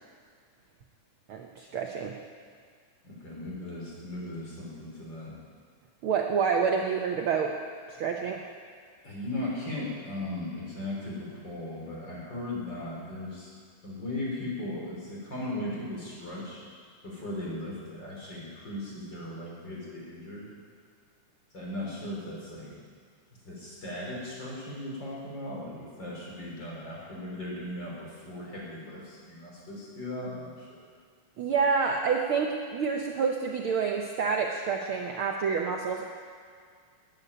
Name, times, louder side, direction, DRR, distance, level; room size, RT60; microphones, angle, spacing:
voice 1, 1.3-2.2 6.0-7.5 7.9-8.4 31.4-36.0, right 5 dB, 80° right, 2 dB, 1.2 m, -28 dB
voice 2, 3.0-5.3 9.0-13.5 13.8-16.6 17.0-20.5 21.5-22.8 23.4-30.8, left 1 dB, 35° left, -4 dB, 4.6 m, -37 dB
13.5 x 9.8 x 9.8 m, 2.1 s
omnidirectional pair, 3.5 m